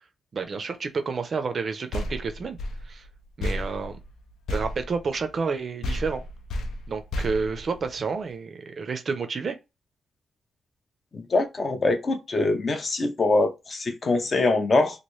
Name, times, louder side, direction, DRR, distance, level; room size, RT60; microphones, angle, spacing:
voice 1, 0.3-2.6 2.9-3.1 3.4-4.0 4.5-6.2 6.9-9.6, right 5 dB, 40° right, 0.4 m, -30 dB
sound 1, 1.9-5.5 5.8-8.3, left 1 dB, 80° left, 0.5 m, -33 dB
voice 2, 11.1-15.0, left 2 dB, 30° left, 0.5 m, -23 dB
2.9 x 2.5 x 3.1 m
wide cardioid pair, 155°, 0 cm